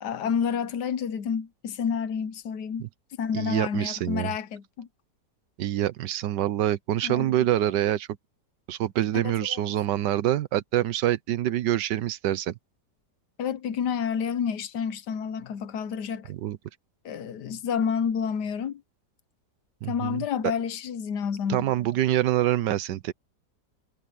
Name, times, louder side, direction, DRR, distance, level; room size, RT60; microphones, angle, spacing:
voice 1, 0.0-2.8 3.2-4.9 7.0-7.3 9.1-9.6 13.4-16.3 17.0-18.8 19.9-21.7, left 7 dB, 80° left, 1.5 m, -29 dB
voice 2, 3.3-4.3 5.6-8.1 8.7-12.5 16.3-16.6 19.8-20.2 21.5-23.1, right 12 dB, 85° right, 1.4 m, -26 dB
omnidirectional pair, 1.8 m